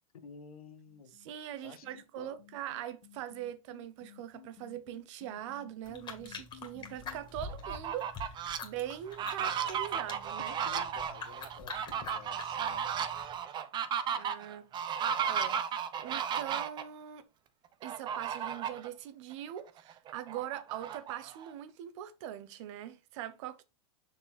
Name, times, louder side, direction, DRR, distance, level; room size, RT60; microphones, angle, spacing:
voice 1, 0.2-1.1 1.6-2.4 10.6-12.8, left 6 dB, 90° left, 1.4 m, -52 dB
sound 1, 1.1-7.2, left 14 dB, 60° left, 1.9 m, -55 dB
voice 2, 1.1-10.5 14.1-14.7 15.2-17.2 17.8-23.6, right 12 dB, 55° right, 1.0 m, -42 dB
sound 2, 5.8-13.4, left 4 dB, 25° left, 2.3 m, -46 dB
Fowl, 7.5-8.6 9.1-16.8 17.8-18.9 19.3-19.4 19.8-21.5, right 8 dB, 25° right, 0.8 m, -35 dB
6.8 x 4.6 x 4.3 m
hypercardioid pair, 130°, 18 cm